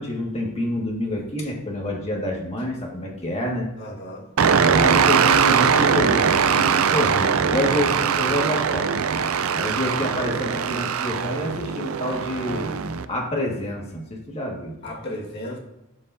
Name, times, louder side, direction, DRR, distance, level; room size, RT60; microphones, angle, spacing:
voice 1, 0.0-3.7 4.6-8.9 9.5-12.7 13.1-14.8, left 1 dB, 30° left, -1 dB, 1.8 m, -27 dB
voice 2, 3.8-4.3 9.4-9.9 14.8-15.6, left 1 dB, 50° left, -2 dB, 1.9 m, -36 dB
sound 1, 4.4-13.1, right 6 dB, 75° right, 0.5 m, -21 dB
12.0 x 5.3 x 2.7 m, 0.93 s
head